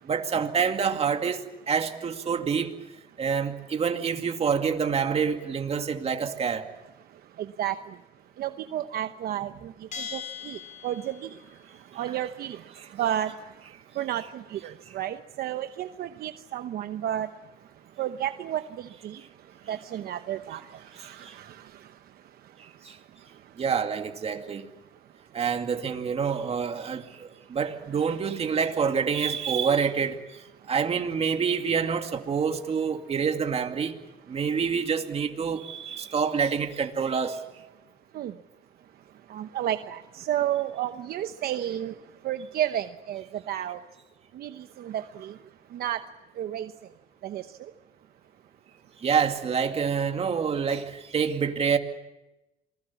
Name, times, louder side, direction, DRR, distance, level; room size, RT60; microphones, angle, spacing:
voice 1, 0.1-2.7 3.2-6.7 21.2-21.3 22.8-23.0 23.6-24.7 25.3-30.2 30.7-34.0 34.3-37.4 49.0-51.8, right 6 dB, 35° right, 2.3 m, -27 dB
voice 2, 7.4-7.8 8.4-9.7 10.0-11.4 11.9-13.4 13.9-17.3 18.0-19.2 19.7-21.8 38.1-38.3 39.3-41.9 42.2-43.8 44.3-45.4 45.7-46.0 46.4-46.7 47.2-47.5, right 11 dB, 65° right, 0.9 m, -32 dB
Bell, 9.9-11.5, left 7 dB, 50° left, 5.6 m, -39 dB
27.5 x 20.0 x 7.1 m
cardioid pair, 110°, 17 cm